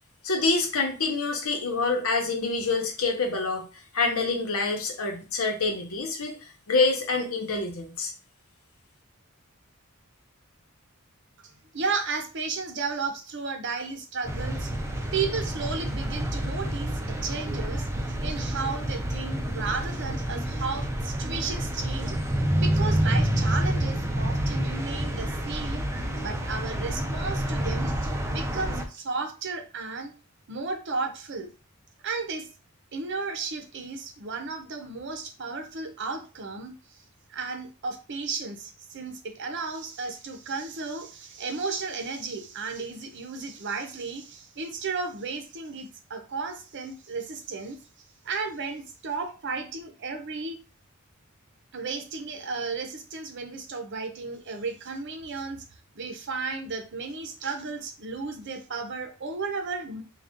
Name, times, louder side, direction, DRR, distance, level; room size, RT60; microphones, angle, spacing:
voice 1, 0.2-3.7 3.9-6.4 6.7-8.1, left 3 dB, 85° left, 3 dB, 0.9 m, -26 dB
voice 2, 11.4-14.8 15.1-16.9 17.2-17.9 18.2-22.2 22.6-25.8 26.2-30.1 30.5-31.5 32.0-32.5 32.9-36.8 37.3-47.8 48.2-50.6 51.7-55.6 56.0-60.0, right 4 dB, 55° right, 6 dB, 0.7 m, -34 dB
sound 1, 14.2-28.8, right 1 dB, 15° right, 0.5 m, -28 dB
3.8 x 2.4 x 3.5 m, 0.34 s
head